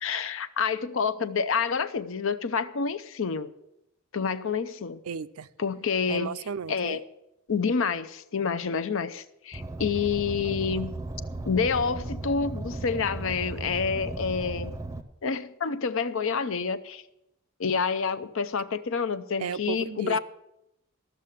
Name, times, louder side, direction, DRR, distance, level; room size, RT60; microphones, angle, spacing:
voice 1, 0.0-3.5 4.1-5.0 5.6-6.3 6.7-7.0 7.5-10.9 11.5-14.7 15.2-17.0 17.6-20.2, left 5 dB, 60° left, 13 dB, 0.6 m, -28 dB
voice 2, 5.0-5.5 6.1-7.0 19.4-20.2, right 6 dB, 75° right, 15 dB, 0.5 m, -34 dB
Car, 9.5-15.0, right 2 dB, 15° right, 0.6 m, -36 dB
13.5 x 6.6 x 7.4 m, 0.86 s
head